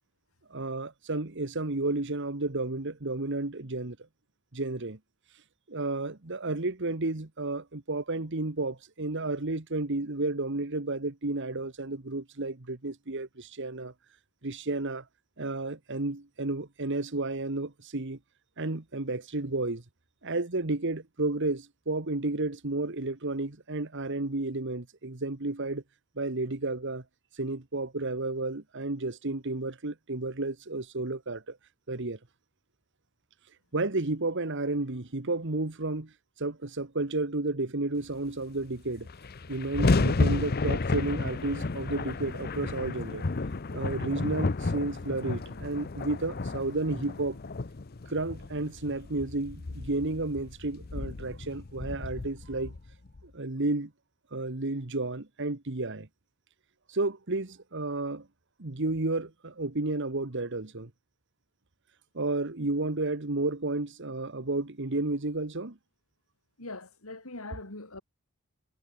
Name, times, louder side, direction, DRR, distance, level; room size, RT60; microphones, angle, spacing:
voice 1, 0.5-4.0 4.5-5.0 5.7-13.9 14.4-15.0 15.4-18.2 18.6-19.8 20.2-25.8 26.2-27.0 27.4-31.6 31.9-32.2 33.7-36.1 36.4-39.1 39.5-43.2 43.7-47.4 48.1-52.7 53.2-53.9 54.3-56.1 56.9-58.3 58.6-60.9 62.1-65.8, right 2 dB, 55° right, 1.5 m, -32 dB
sound 1, 38.6-38.7 38.9-53.2, left 3 dB, 45° left, 0.7 m, -32 dB
voice 2, 66.6-68.0, left 2 dB, 80° left, 4.3 m, -42 dB
head